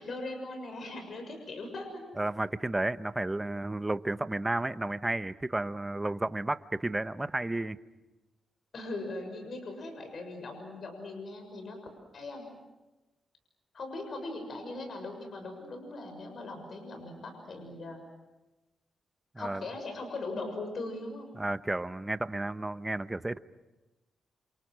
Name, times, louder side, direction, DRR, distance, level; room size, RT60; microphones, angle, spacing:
voice 1, 0.0-2.1 8.7-11.8 12.1-12.5 13.7-18.0 19.3-21.3, left 2 dB, 55° left, 5 dB, 6.7 m, -40 dB
voice 2, 2.2-7.8 19.3-19.7 21.3-23.4, right 2 dB, 15° right, 12 dB, 0.9 m, -32 dB
29.0 x 28.5 x 6.3 m, 1.1 s
cardioid pair, 80°, 0 cm